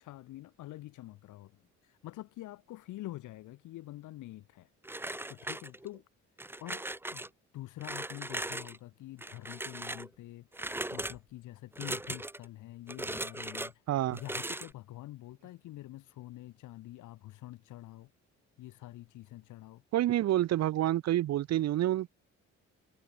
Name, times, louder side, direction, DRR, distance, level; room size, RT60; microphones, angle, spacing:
voice 1, 0.0-1.6 2.0-4.7 5.3-6.0 6.6-6.8 7.1-7.2 7.5-10.5 10.9-13.7 14.1-18.1 18.6-19.8, left 16 dB, 85° left, 1.3 m, -46 dB
sound 1, 4.8-6.0 6.4-7.3 7.8-8.8 9.2-10.1 10.5-11.2 11.7-12.5 12.9-13.7 14.1-14.7, right 1 dB, 5° right, 1.1 m, -38 dB
voice 2, 13.9-14.2 19.9-22.1, right 13 dB, 60° right, 0.6 m, -28 dB
cardioid pair, 90°, 30 cm